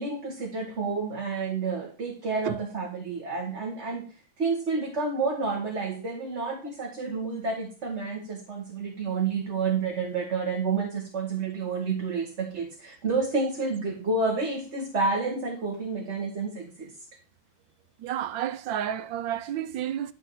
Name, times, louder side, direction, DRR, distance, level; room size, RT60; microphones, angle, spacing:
voice 1, 0.0-4.1 4.4-16.9, right 4 dB, 35° right, 2.0 m, -29 dB
voice 2, 18.0-20.1, right 10 dB, 75° right, 1.5 m, -31 dB
12.5 x 4.4 x 7.9 m
omnidirectional pair, 2.1 m